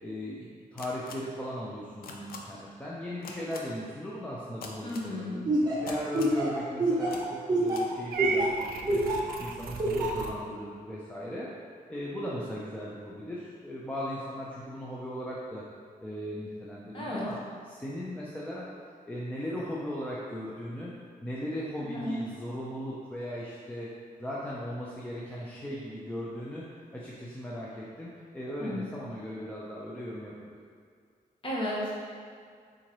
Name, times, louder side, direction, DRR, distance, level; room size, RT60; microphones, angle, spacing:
voice 1, 0.0-5.4 5.8-9.0 9.4-11.5 11.9-15.6 16.0-17.4 17.7-18.7 19.1-20.9 21.2-23.9 24.2-26.6 26.9-30.6, equal, 10° left, -6 dB, 0.4 m, -37 dB
sound 1, 0.8-1.1 2.0-2.4 3.2-3.6 4.6-5.1 5.9-6.4 7.1-7.2 7.7-7.8, left 5 dB, 85° left, 0.5 m, -42 dB
voice 2, 4.8-5.4 16.9-17.2 21.9-22.2 28.6-28.8 31.4-31.9, left 1 dB, 35° left, -6 dB, 1.1 m, -33 dB
Laughter, 5.5-9.3 9.8-10.2, right 1 dB, 25° right, 1.0 m, -27 dB
Purr / Meow, 8.1-10.3, right 4 dB, 85° right, 0.4 m, -35 dB
4.3 x 3.7 x 3.0 m, 2.1 s
wide cardioid pair, 145°, 15 cm